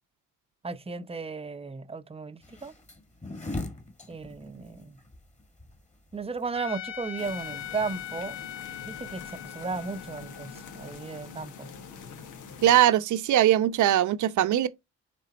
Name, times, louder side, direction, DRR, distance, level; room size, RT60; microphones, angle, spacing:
voice 1, 0.6-2.7 4.1-5.0 6.1-8.4 8.8-11.7, right 4 dB, 20° right, 0.7 m, -35 dB
sound 1, 2.4-7.5, left 2 dB, 25° left, 2.0 m, -40 dB
Trumpet, 6.5-11.7, left 10 dB, 45° left, 2.0 m, -41 dB
sound 2, 7.2-12.8, left 5 dB, 80° left, 1.2 m, -45 dB
voice 2, 12.6-14.7, right 12 dB, 75° right, 0.9 m, -21 dB
7.7 x 3.4 x 4.1 m
cardioid pair, 90°, 30 cm